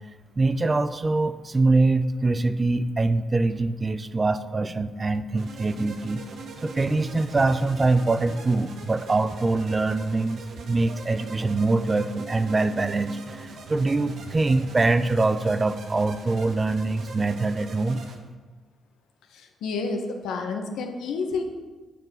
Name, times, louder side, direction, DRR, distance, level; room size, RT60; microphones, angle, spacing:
voice 1, 0.4-6.2 6.6-18.0, right 3 dB, 25° right, 12 dB, 0.5 m, -24 dB
sound 1, 5.4-18.2, right 4 dB, 70° right, 1.2 m, -42 dB
voice 2, 19.3-21.4, left 4 dB, 90° left, 4 dB, 1.1 m, -30 dB
9.3 x 5.9 x 5.3 m, 1.3 s
cardioid pair, 105°, 0 cm